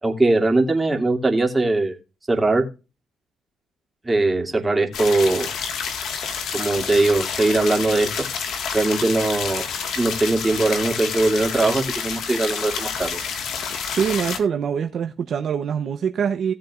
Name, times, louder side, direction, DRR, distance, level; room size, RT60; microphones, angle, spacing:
voice 1, 0.0-2.0 2.3-2.6 4.0-5.5 6.5-8.1 8.7-9.6 10.0-13.2, right 2 dB, 20° right, 2.6 m, -20 dB
sound 1, 4.9-14.4, left 6 dB, 75° left, 1.7 m, -29 dB
voice 2, 13.9-16.5, right 7 dB, 60° right, 0.9 m, -24 dB
17.0 x 7.4 x 2.5 m
cardioid pair, 90°, 0 cm